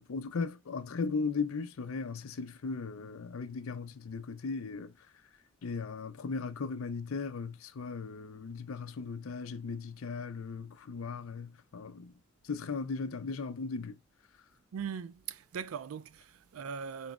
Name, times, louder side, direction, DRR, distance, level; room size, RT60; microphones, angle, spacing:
voice 1, 0.0-4.9 5.6-12.1 12.4-14.0, left 4 dB, 80° left, 0.5 m, -37 dB
voice 2, 14.7-17.1, right 7 dB, 85° right, 0.4 m, -40 dB
4.4 x 3.0 x 2.4 m
head